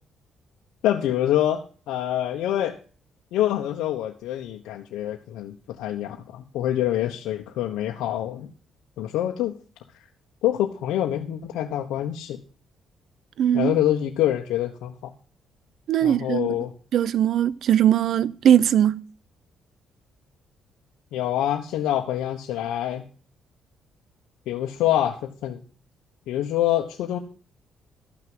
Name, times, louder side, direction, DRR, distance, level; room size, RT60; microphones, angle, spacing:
voice 1, 0.8-1.6 1.9-2.8 3.3-8.5 9.0-9.5 10.4-12.4 13.5-15.1 16.0-16.7 21.1-23.1 24.5-25.6 26.3-27.2, left 12 dB, 90° left, 1.2 m, -26 dB
voice 2, 13.4-13.7 15.9-16.5 16.9-19.0, right 10 dB, 70° right, 0.7 m, -20 dB
13.5 x 6.0 x 7.9 m
cardioid pair, 90°, 0 cm